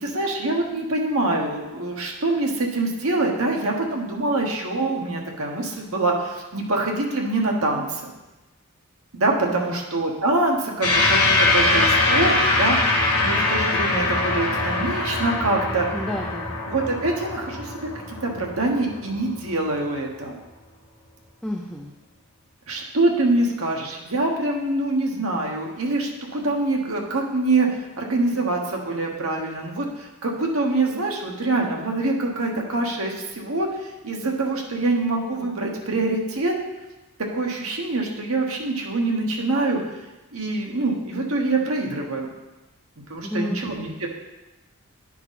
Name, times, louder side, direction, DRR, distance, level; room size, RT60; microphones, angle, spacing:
voice 1, 0.0-8.1 9.2-15.9 16.7-17.7 18.1-20.3 22.7-27.7 28.0-36.5 37.3-39.8 40.3-42.3 43.1-44.1, right 2 dB, 75° right, 0 dB, 1.3 m, -25 dB
sound 1, 10.8-19.5, left 2 dB, 80° left, 1.3 m, -22 dB
voice 2, 15.9-16.6 21.4-21.9 43.2-43.6, left 1 dB, 5° left, 0 dB, 0.4 m, -30 dB
10.0 x 4.5 x 4.1 m, 1.1 s
head